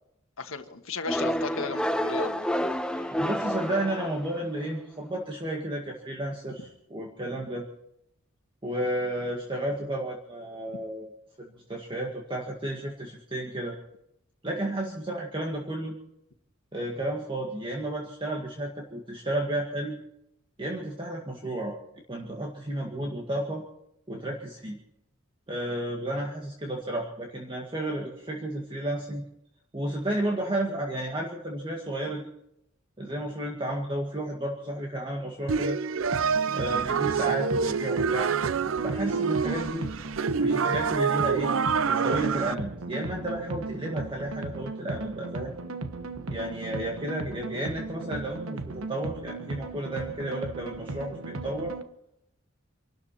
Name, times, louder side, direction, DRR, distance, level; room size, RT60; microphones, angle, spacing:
voice 1, 0.4-2.5, left 4 dB, 75° left, 7 dB, 1.6 m, -35 dB
sound 1, 1.1-4.6, equal, 5° left, 0.6 m, -29 dB
voice 2, 2.9-7.7 8.6-11.1 11.4-13.8 14.4-16.0 16.7-20.0 20.6-21.8 22.1-23.6 24.1-24.8 25.5-29.3 29.7-32.3 33.0-35.8 36.5-38.3 38.8-39.9 40.4-41.6 41.8-45.5 46.3-51.7, right 1 dB, 25° right, 0 dB, 1.9 m, -32 dB
sound 2, 35.5-42.5, right 6 dB, 70° right, 0.5 m, -27 dB
sound 3, 36.0-51.8, right 2 dB, 90° right, 1.2 m, -37 dB
26.5 x 12.5 x 4.3 m, 0.78 s
head